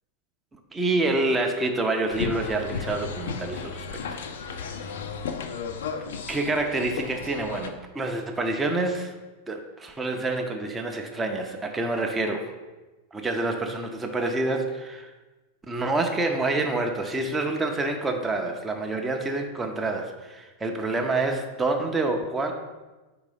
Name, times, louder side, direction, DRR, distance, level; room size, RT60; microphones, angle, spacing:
voice 1, 0.7-4.2 4.5-4.9 6.3-9.2 9.5-12.5 13.1-15.1 15.7-22.5, right 2 dB, 15° right, 3 dB, 0.6 m, -27 dB
sound 1, 2.1-7.7, left 5 dB, 60° left, 0.4 m, -34 dB
4.7 x 3.8 x 5.3 m, 1.2 s
figure-of-eight pair, 90°, 0 cm